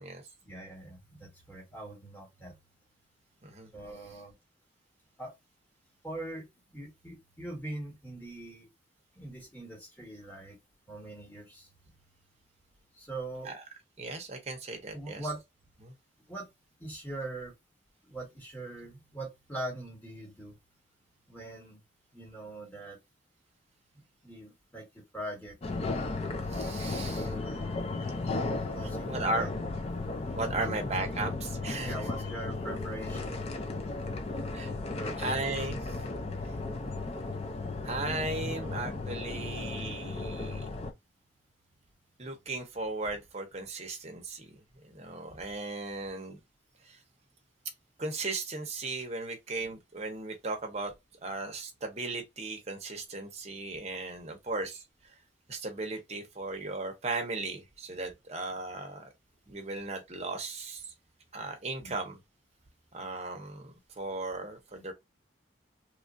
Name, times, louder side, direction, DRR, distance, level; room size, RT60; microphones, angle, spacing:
voice 1, 0.4-2.5 3.7-4.3 5.2-5.3 6.0-8.7 9.1-10.6 10.9-11.7 13.0-13.5 14.9-15.4 16.3-16.5 16.8-17.5 18.0-20.5 21.3-21.8 22.1-23.0 24.2-25.6 26.8-27.7 28.7-29.6 30.5-30.7 31.2-31.3 31.8-33.4 34.9-35.5 61.8-61.9, right 1 dB, 10° left, 1.2 m, -42 dB
voice 2, 14.0-15.3 15.8-15.9 26.5-27.3 29.1-29.5 30.3-32.0 34.5-34.7 35.2-35.8 37.8-40.7 42.2-46.4 46.8-47.0 48.0-50.9 51.2-54.8 55.5-59.1 59.5-60.9 61.3-62.2 62.9-64.9, right 3 dB, 35° right, 0.7 m, -36 dB
sound 1, 25.6-40.9, left 3 dB, 30° left, 0.4 m, -35 dB
3.1 x 2.4 x 2.5 m
head